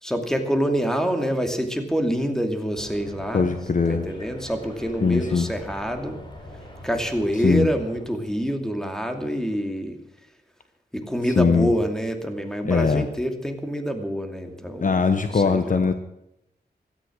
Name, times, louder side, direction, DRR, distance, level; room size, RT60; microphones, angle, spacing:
voice 1, 0.0-3.5 3.9-6.2 6.8-10.0 10.9-15.1 15.3-15.9, equal, 5° left, 5 dB, 2.6 m, -26 dB
sound 1, 2.8-8.5, left 1 dB, 25° left, 4.0 m, -42 dB
voice 2, 3.3-4.0 5.0-5.5 7.4-7.7 11.4-11.7 12.6-13.1 14.8-15.9, left 5 dB, 50° left, 9 dB, 1.1 m, -20 dB
17.0 x 13.5 x 6.3 m, 0.81 s
wide cardioid pair, 100°, 17 cm